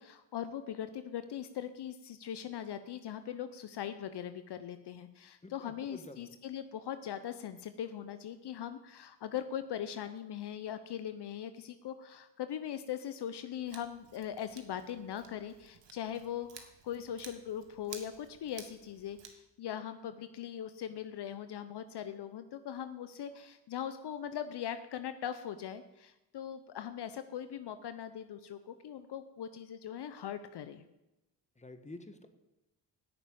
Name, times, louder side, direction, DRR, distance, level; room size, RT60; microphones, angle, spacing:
voice 1, 0.0-30.9, left 9 dB, 60° left, 11 dB, 0.8 m, -40 dB
voice 2, 5.4-6.3 31.6-32.3, left 2 dB, 15° left, 8 dB, 1.5 m, -49 dB
Scissors, 13.7-19.3, right 6 dB, 65° right, 1.8 m, -53 dB
9.8 x 6.8 x 8.5 m, 0.96 s
supercardioid pair, 50°, 45 cm